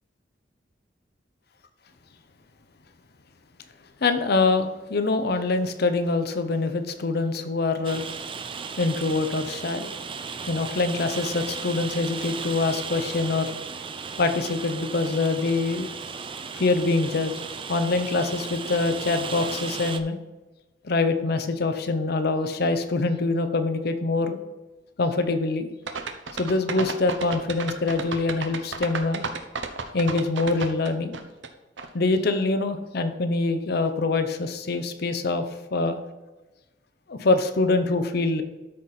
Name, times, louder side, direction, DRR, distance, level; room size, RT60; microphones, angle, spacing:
voice 1, 4.0-8.0 8.8-9.9 10.5-13.5 14.2-15.9 16.5-17.3 17.7-20.2 20.8-24.4 25.0-25.7 26.4-29.2 29.9-31.2 31.9-35.5 35.7-36.0 37.1-38.4, left 3 dB, 60° left, 9 dB, 0.7 m, -24 dB
Rain, 7.8-20.0, right 5 dB, 30° right, 0.4 m, -35 dB
sound 1, 25.9-31.5 31.8-31.9, right 4 dB, 80° right, 0.8 m, -32 dB
12.5 x 4.2 x 4.1 m, 1.1 s
head